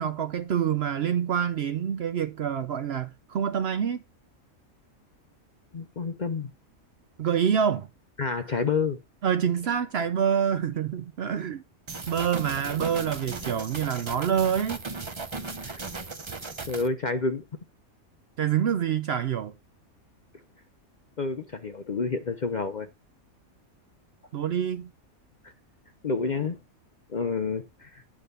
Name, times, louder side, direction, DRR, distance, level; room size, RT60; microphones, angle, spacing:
voice 1, 0.0-4.0 7.2-7.9 9.2-11.6 12.1-14.8 18.4-19.5 24.3-24.9, right 8 dB, 60° right, 0.7 m, -26 dB
voice 2, 5.7-6.5 8.2-9.0 15.6-15.8 16.7-17.4 21.2-22.9 26.0-26.6 27.1-28.0, left 4 dB, 45° left, 0.6 m, -29 dB
sound 1, 11.9-16.9, right 3 dB, 30° right, 0.6 m, -37 dB
9.7 x 3.6 x 6.7 m
omnidirectional pair, 1.5 m